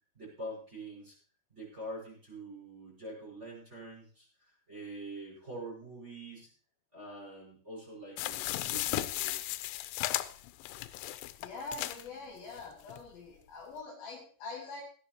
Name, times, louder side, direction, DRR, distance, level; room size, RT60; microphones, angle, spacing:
voice 1, 0.1-1.2 1.5-6.5 6.9-9.5, right 1 dB, 15° right, -4 dB, 5.5 m, -45 dB
sound 1, 8.2-12.1 12.6-12.7 12.9-13.0, left 16 dB, 85° left, 3.0 m, -35 dB
voice 2, 11.4-14.8, left 3 dB, 55° left, 0 dB, 3.7 m, -44 dB
16.5 x 12.5 x 2.9 m, 0.44 s
omnidirectional pair, 5.4 m